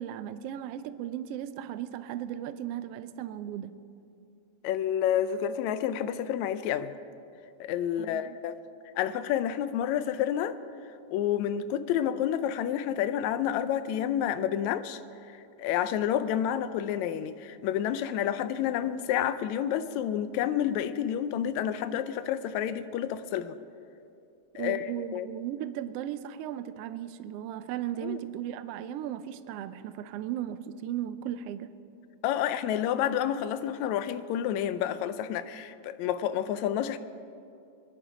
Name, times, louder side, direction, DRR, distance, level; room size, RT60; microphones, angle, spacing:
voice 1, 0.0-3.8 8.0-8.4 24.6-31.7, right 11 dB, 80° right, 1.4 m, -36 dB
voice 2, 4.6-6.9 7.6-8.6 9.0-10.6 11.1-15.0 15.3-23.6 24.6-25.3 28.0-28.2 32.2-37.0, left 10 dB, 80° left, 1.9 m, -29 dB
22.5 x 11.0 x 5.0 m
omnidirectional pair, 3.4 m